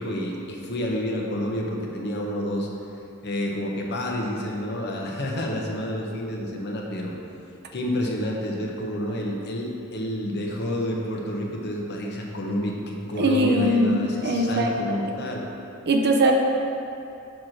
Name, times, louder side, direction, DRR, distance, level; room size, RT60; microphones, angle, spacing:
voice 1, 0.0-2.7 3.2-7.1 7.7-15.5, left 1 dB, 50° left, -1 dB, 1.0 m, -29 dB
voice 2, 13.2-13.9 14.2-15.0 15.9-16.3, right 1 dB, 50° right, 2 dB, 0.7 m, -21 dB
6.0 x 4.6 x 6.4 m, 2.7 s
head